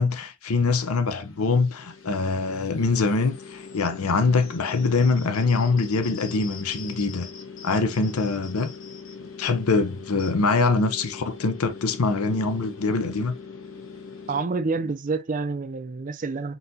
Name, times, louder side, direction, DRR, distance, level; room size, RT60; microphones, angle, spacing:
voice 1, 0.0-7.3 7.6-8.7 9.2-13.3, left 3 dB, 85° left, 0.7 m, -24 dB
sound 1, 1.2-14.4, left 5 dB, 65° left, 1.1 m, -41 dB
voice 2, 14.3-16.6, right 4 dB, 35° right, 0.4 m, -28 dB
3.9 x 3.9 x 2.7 m
head